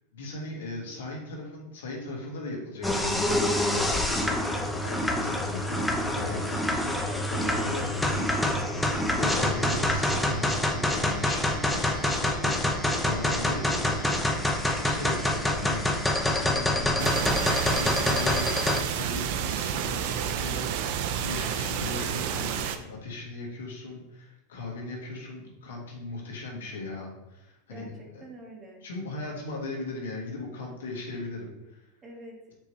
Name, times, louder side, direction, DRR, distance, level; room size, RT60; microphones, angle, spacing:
voice 1, 0.1-7.0 7.3-8.5 9.1-15.9 16.2-28.2 28.8-31.8, left 2 dB, 85° left, -2 dB, 2.1 m, -38 dB
sound 1, 2.8-18.8, left 1 dB, 5° left, 0.8 m, -26 dB
voice 2, 6.8-7.7 27.7-28.8 32.0-32.5, right 2 dB, 25° right, 0 dB, 1.7 m, -45 dB
sound 2, 17.0-22.8, right 8 dB, 60° right, 0.6 m, -30 dB
6.7 x 4.7 x 3.3 m, 0.93 s
supercardioid pair, 125°, 0 cm